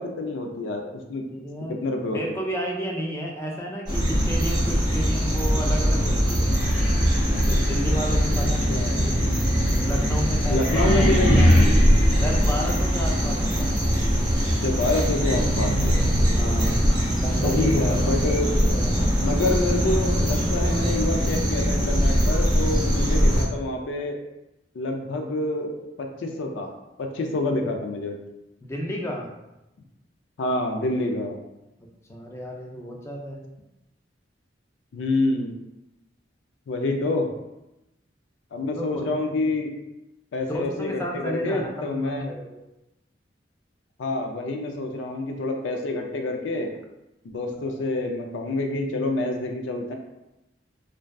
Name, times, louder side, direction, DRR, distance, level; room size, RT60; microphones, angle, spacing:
voice 1, 0.0-1.2 1.7-2.2 8.7-9.1 10.5-11.7 14.6-16.0 17.4-18.5 19.2-24.2 24.7-26.7 27.0-28.2 30.4-31.4 34.9-35.6 36.7-37.3 38.5-39.7 40.3-42.3 44.0-46.7 47.2-49.9, left 2 dB, 90° left, 3 dB, 0.4 m, -27 dB
voice 2, 1.3-1.8 2.1-6.7 7.3-8.7 9.0-9.3 9.7-11.8 12.2-14.1 16.4-16.9 17.2-19.2 28.6-29.3 31.8-33.4 38.7-39.1 40.4-42.5 47.5-47.8, equal, 15° left, 0 dB, 0.3 m, -33 dB
sound 1, 3.9-23.4, equal, 25° right, 0.6 m, -22 dB
sound 2, 6.4-13.3, equal, 65° left, 0.7 m, -24 dB
2.6 x 2.2 x 2.2 m, 0.94 s
head